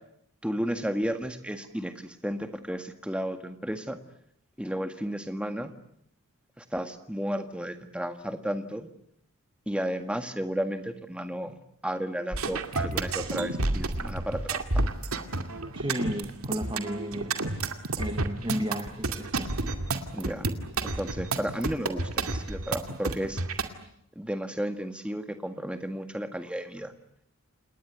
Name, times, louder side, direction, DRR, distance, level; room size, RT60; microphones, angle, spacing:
voice 1, 0.4-4.0 4.6-5.7 6.6-8.9 9.7-11.6 11.8-14.8 20.1-20.5 21.0-23.4 24.1-26.9, equal, 5° right, 8 dB, 1.7 m, -33 dB
sound 1, 12.3-23.7, right 3 dB, 75° right, 2.4 m, -30 dB
voice 2, 15.7-19.5, equal, 20° right, 7 dB, 1.5 m, -34 dB
29.0 x 20.0 x 9.3 m, 0.74 s
head